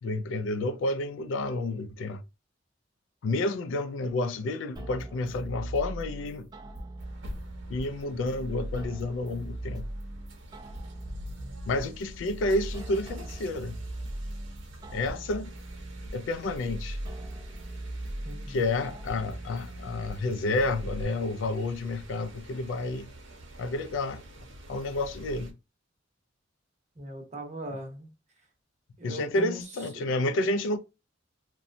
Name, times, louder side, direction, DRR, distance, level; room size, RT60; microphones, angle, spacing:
voice 1, 0.0-2.2 3.2-6.5 7.7-9.9 11.7-13.8 14.9-15.5 16.1-17.0 18.5-23.1 23.6-24.2 24.7-25.5 29.0-30.8, left 2 dB, 75° left, 0.3 m, -30 dB
sound 1, 4.8-21.0, right 1 dB, 20° right, 0.3 m, -40 dB
sound 2, 7.0-25.5, right 1 dB, 75° right, 0.7 m, -47 dB
voice 2, 18.2-18.6 27.0-28.1 29.0-29.6 29.9-30.1, right 1 dB, 40° right, 0.8 m, -39 dB
2.7 x 2.1 x 2.5 m
head